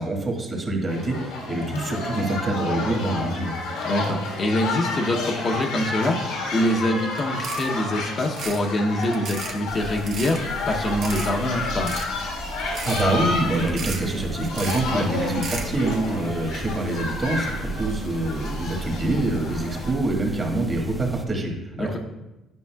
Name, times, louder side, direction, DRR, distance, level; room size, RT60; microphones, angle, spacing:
voice 1, 0.0-3.5 12.8-21.5 21.8-22.0, right 2 dB, 35° right, 1 dB, 1.6 m, -25 dB
sound 1, 0.9-19.9, left 3 dB, 90° left, 1.5 m, -31 dB
voice 2, 3.8-12.0 14.9-15.1 21.8-22.0, left 1 dB, 40° left, 1 dB, 0.7 m, -25 dB
sound 2, 7.1-7.2 7.4-7.8 8.3-8.6 9.0-9.5 10.0-10.4 11.0-11.3 11.7-12.3 12.6-13.0 13.5-14.1 14.4-14.8 15.3-15.8, right 5 dB, 65° right, 0.8 m, -34 dB
sound 3, 9.7-21.2, right 1 dB, 5° right, 0.6 m, -36 dB
9.6 x 5.3 x 2.3 m, 1.0 s
supercardioid pair, 85°, 0 cm